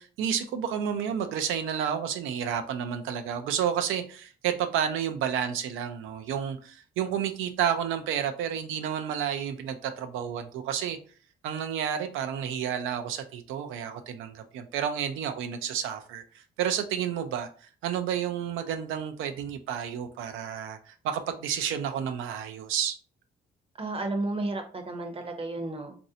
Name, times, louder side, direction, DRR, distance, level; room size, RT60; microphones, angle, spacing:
voice 1, 0.0-11.0 11.4-17.5 17.8-23.0, right 8 dB, 90° right, 8 dB, 0.5 m, -31 dB
voice 2, 23.8-26.0, right 2 dB, 30° right, 5 dB, 0.7 m, -32 dB
3.1 x 2.6 x 2.7 m, 0.41 s
cardioid pair, 90°, 20 cm